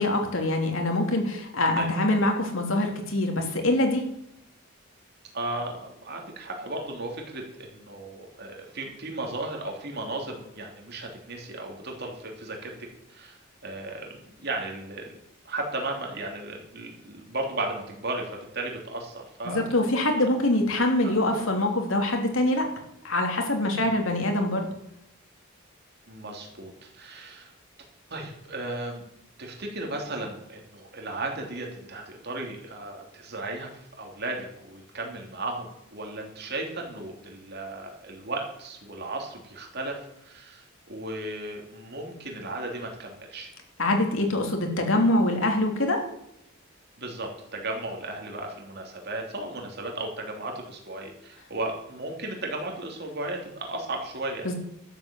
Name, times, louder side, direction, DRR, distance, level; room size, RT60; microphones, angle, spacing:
voice 1, 0.0-4.0 19.4-22.7 23.0-24.7 43.8-46.0 54.4-54.5, left 1 dB, 70° left, 3 dB, 2.9 m, -24 dB
voice 2, 5.3-12.7 13.1-15.1 15.4-19.7 20.3-20.4 21.0-21.1 23.7-24.0 26.1-27.5 28.1-29.0 29.4-43.5 47.0-54.5, right 2 dB, 50° right, 1 dB, 3.1 m, -35 dB
12.5 x 8.5 x 7.7 m, 0.78 s
head